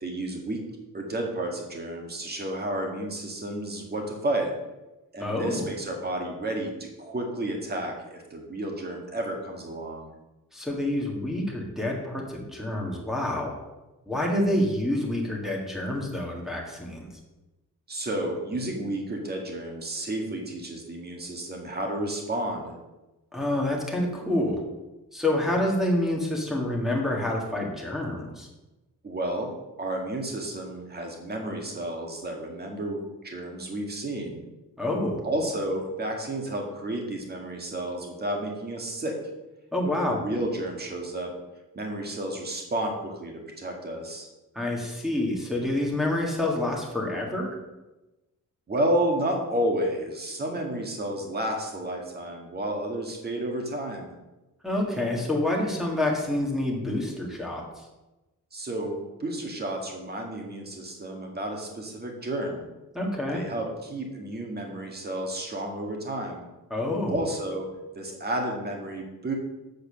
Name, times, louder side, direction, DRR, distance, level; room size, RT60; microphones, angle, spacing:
voice 1, 0.0-0.6 0.9-4.5 5.1-10.1 14.5-14.7 17.9-22.7 29.0-29.5 29.8-34.4 35.2-39.2 39.9-41.3 41.7-44.3 48.7-54.1 58.5-62.7 63.3-66.5 67.1-67.7 68.0-69.3, right 1 dB, 30° right, 1 dB, 1.8 m, -31 dB
voice 2, 5.2-5.7 10.5-13.5 14.1-17.1 23.3-24.6 25.1-28.5 34.8-35.2 39.7-40.2 44.5-47.5 54.6-57.6 62.9-63.4 66.7-67.3, left 1 dB, ahead, -3 dB, 1.7 m, -27 dB
7.8 x 6.8 x 6.3 m, 1.0 s
wide cardioid pair, 175°, 33 cm